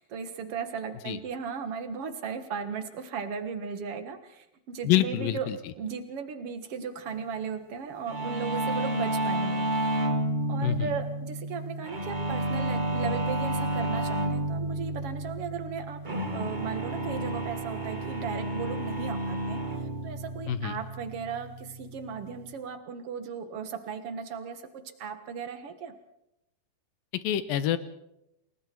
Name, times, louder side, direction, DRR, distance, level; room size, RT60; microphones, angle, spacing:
voice 1, 0.0-5.5 5.8-10.1 10.5-26.0, right 6 dB, 50° right, 9 dB, 1.9 m, -36 dB
voice 2, 4.9-5.6 10.6-10.9 20.5-20.8 27.2-27.8, left 12 dB, 75° left, 13 dB, 2.5 m, -26 dB
sound 1, 8.1-22.5, right 1 dB, 65° right, 0.4 m, -31 dB
29.0 x 20.0 x 4.6 m, 0.86 s
omnidirectional pair, 4.5 m